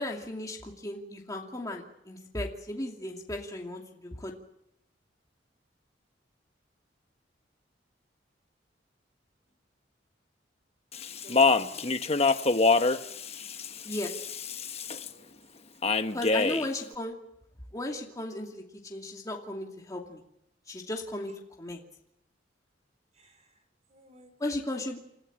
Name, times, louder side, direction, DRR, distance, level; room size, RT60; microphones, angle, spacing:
voice 1, 0.0-4.3 13.8-14.1 16.1-17.1 17.7-20.2 20.7-21.3 21.6-21.8 24.4-25.0, left 1 dB, 20° left, 0 dB, 2.7 m, -36 dB
Speech, 10.9-15.1 15.8-16.7, left 4 dB, 35° left, 1.1 m, -26 dB
voice 2, 11.2-12.1 15.1-15.3 15.8-16.0 16.4-16.5 23.2-23.5 23.9-24.6, right 1 dB, 40° right, 7 dB, 5.0 m, -54 dB
29.5 x 14.0 x 8.8 m, 0.81 s
head